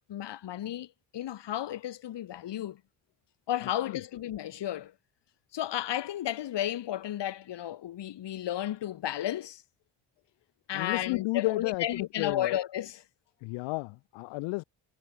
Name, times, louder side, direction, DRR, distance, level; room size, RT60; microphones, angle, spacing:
voice 1, 0.0-2.8 3.5-4.9 5.5-9.6 10.7-13.0, left 12 dB, 70° left, 1.8 m, -33 dB
voice 2, 10.7-12.5 13.4-14.6, left 26 dB, 90° left, 0.6 m, -32 dB
supercardioid pair, 55°, 44 cm